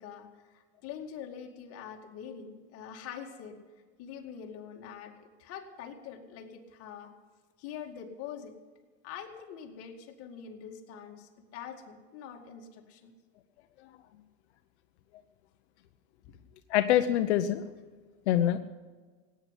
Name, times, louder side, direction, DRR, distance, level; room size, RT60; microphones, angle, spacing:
voice 1, 0.0-3.6 4.0-7.1 7.6-8.6 9.0-13.1 16.2-16.3, left 8 dB, 45° left, 2 dB, 2.3 m, -44 dB
voice 2, 16.7-17.6 18.3-18.6, left 11 dB, 85° left, 7 dB, 0.9 m, -25 dB
16.5 x 9.7 x 8.2 m, 1.4 s
supercardioid pair, 140°, 33 cm